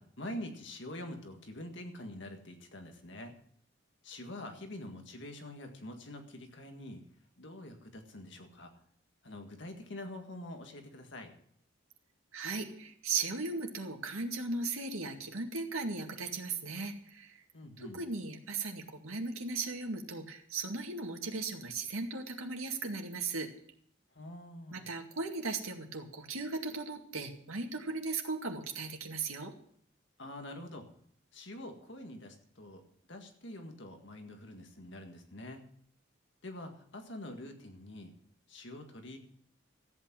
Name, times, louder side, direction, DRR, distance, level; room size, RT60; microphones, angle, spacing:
voice 1, 0.0-3.4 4.0-7.1 7.4-8.7 9.2-11.3 17.5-18.0 24.1-24.9 30.2-30.9 31.3-32.8 33.1-35.7 36.4-38.1 38.5-39.2, left 1 dB, 60° left, 4 dB, 1.9 m, -45 dB
voice 2, 12.3-17.4 17.8-23.5 24.7-29.5, right 3 dB, 85° right, 4 dB, 2.1 m, -37 dB
14.0 x 8.6 x 7.5 m, 0.64 s
head